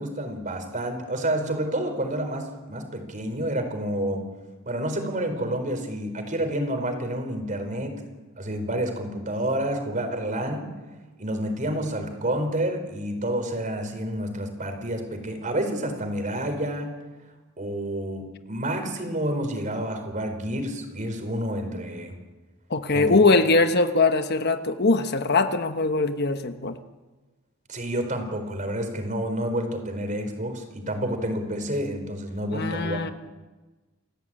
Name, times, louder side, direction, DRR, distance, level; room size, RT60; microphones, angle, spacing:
voice 1, 0.0-4.3 4.7-8.0 8.4-10.7 11.2-16.9 17.6-22.1 22.9-23.2 27.7-33.1, right 1 dB, 40° right, 6 dB, 4.4 m, -29 dB
voice 2, 22.7-26.8 32.5-33.1, left 3 dB, 50° left, 8 dB, 1.2 m, -21 dB
29.5 x 15.0 x 8.8 m, 1.2 s
head